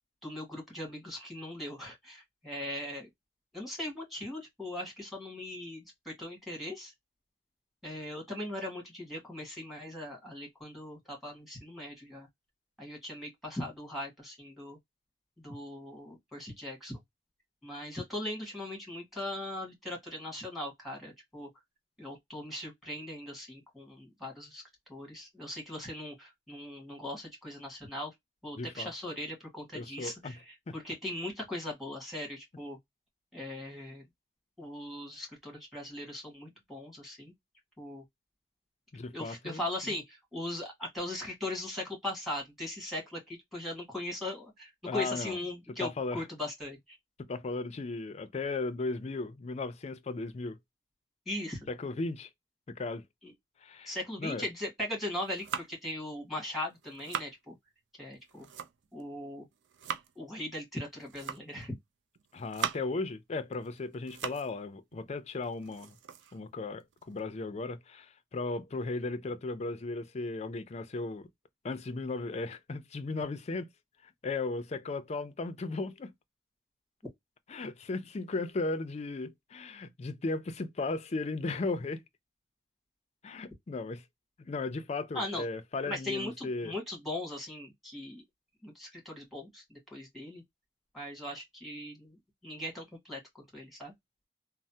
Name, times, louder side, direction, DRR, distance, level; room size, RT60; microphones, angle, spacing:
voice 1, 0.2-3.1 3.5-6.9 7.8-12.3 12.8-14.8 15.4-17.0 17.6-21.5 22.0-24.6 24.9-28.1 28.4-32.8 33.3-34.0 34.6-37.3 37.8-38.0 39.1-47.0 51.2-51.7 53.2-53.3 53.8-57.5 58.0-58.5 58.9-59.4 60.1-61.7 85.1-85.4 85.8-88.2 88.6-90.4 90.9-93.9, left 1 dB, ahead, 1.5 m, -39 dB
voice 2, 28.6-28.9 29.7-30.3 30.7-30.8 38.9-39.9 44.9-45.4 45.8-46.2 47.3-50.6 51.7-52.3 52.7-53.0 53.6-54.4 62.3-65.9 66.3-71.3 71.6-73.7 74.2-76.1 77.5-82.0 83.2-84.0 84.4-86.7, left 3 dB, 35° left, 0.4 m, -36 dB
sound 1, 55.1-55.9 56.6-57.4 58.1-59.0 59.4-60.1 60.9-61.6 62.2-63.0 63.5-64.6 64.9-65.0 65.4-67.2, right 7 dB, 80° right, 0.4 m, -40 dB
3.2 x 2.0 x 2.7 m
head